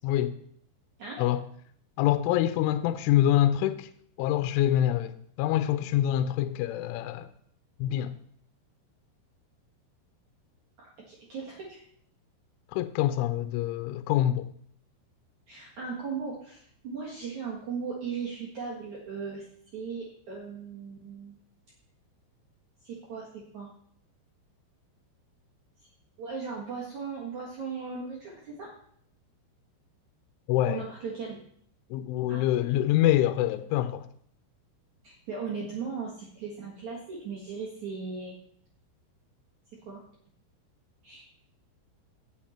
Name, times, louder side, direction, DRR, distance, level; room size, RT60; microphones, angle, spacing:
voice 1, 0.0-0.4 1.2-1.4 2.0-3.9 4.2-7.3 7.8-8.1 12.7-14.5 30.5-30.9 31.9-34.1, left 12 dB, 85° left, 3.0 m, -25 dB
voice 2, 10.8-11.8 15.5-19.5 19.7-21.4 22.8-23.3 23.5-23.7 26.2-28.7 30.7-31.4 32.3-32.8 35.0-38.3 39.9-40.0 41.0-41.2, right 5 dB, 60° right, 2.1 m, -37 dB
16.5 x 6.5 x 4.3 m
omnidirectional pair, 5.6 m